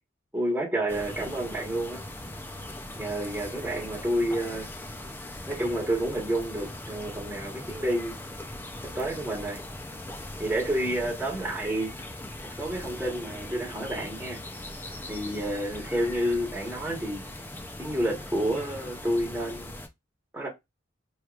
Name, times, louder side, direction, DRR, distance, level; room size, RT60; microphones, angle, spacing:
voice 1, 0.3-2.0 2.9-4.7 5.5-8.2 8.8-9.6 10.4-11.9 12.4-14.4 15.1-17.2 17.8-19.7 20.3-20.5, right 1 dB, 10° right, 1.3 m, -29 dB
sound 1, 0.9-19.9, left 1 dB, 10° left, 0.5 m, -40 dB
4.7 x 3.1 x 2.4 m
head